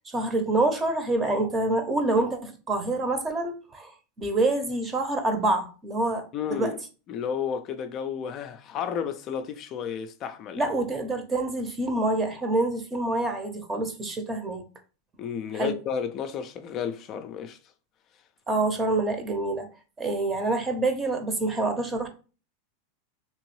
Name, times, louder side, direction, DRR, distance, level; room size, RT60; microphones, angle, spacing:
voice 1, 0.0-3.9 4.2-6.8 10.6-14.6 15.5-15.7 18.5-19.7 20.0-22.1, right 2 dB, 20° right, 0.7 m, -26 dB
voice 2, 6.3-6.8 7.1-10.6 15.2-17.6, left 7 dB, 40° left, 0.3 m, -32 dB
2.9 x 2.6 x 3.1 m
hypercardioid pair, 115°, 0 cm